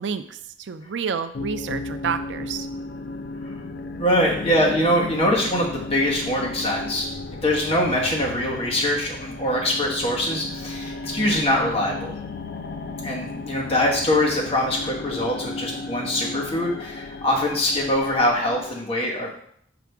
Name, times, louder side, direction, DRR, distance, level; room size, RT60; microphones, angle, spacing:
voice 1, 0.0-2.7, right 6 dB, 75° right, 11 dB, 0.4 m, -29 dB
sound 1, 1.3-18.8, left 3 dB, 55° left, 0.5 m, -34 dB
voice 2, 4.0-7.1 7.4-12.2 13.0-19.4, left 1 dB, 35° left, -3 dB, 1.4 m, -23 dB
6.0 x 4.6 x 3.5 m, 0.66 s
head